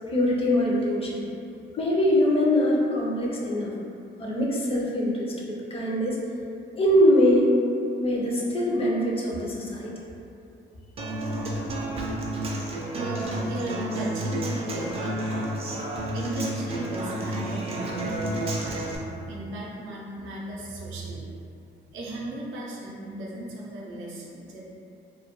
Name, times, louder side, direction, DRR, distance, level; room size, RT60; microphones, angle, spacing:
voice 1, 0.1-1.2 1.7-3.7 4.2-6.2 6.8-7.5 8.0-9.9, left 1 dB, 30° left, -3 dB, 0.5 m, -23 dB
Human voice / Acoustic guitar, 11.0-19.0, right 1 dB, 30° right, 0.4 m, -30 dB
voice 2, 12.6-15.5 16.1-21.3 21.9-24.6, right 2 dB, 80° right, -4 dB, 0.5 m, -36 dB
2.2 x 2.1 x 2.8 m, 2.6 s
cardioid pair, 90°, 20 cm